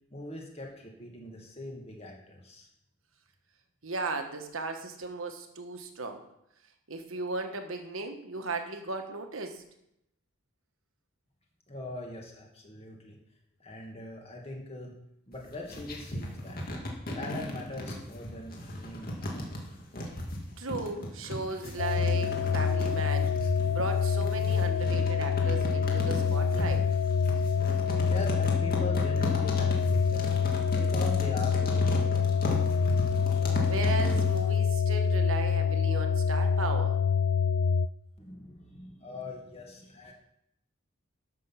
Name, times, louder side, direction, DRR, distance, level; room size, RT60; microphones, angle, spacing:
voice 1, 0.1-2.7 11.7-13.2 13.6-14.9 15.3-16.6 17.1-19.6 28.1-34.1 38.2-40.1, left 2 dB, 30° left, 0 dB, 1.8 m, -42 dB
voice 2, 3.8-6.3 6.9-9.6 20.6-23.3 23.7-26.9 33.6-37.0, right 3 dB, 75° right, 6 dB, 1.4 m, -36 dB
sound 1, 15.3-34.4, equal, 45° left, 2.2 m, -36 dB
sound 2, 21.8-37.9, left 6 dB, 75° left, 0.4 m, -26 dB
13.0 x 6.1 x 5.8 m, 0.79 s
head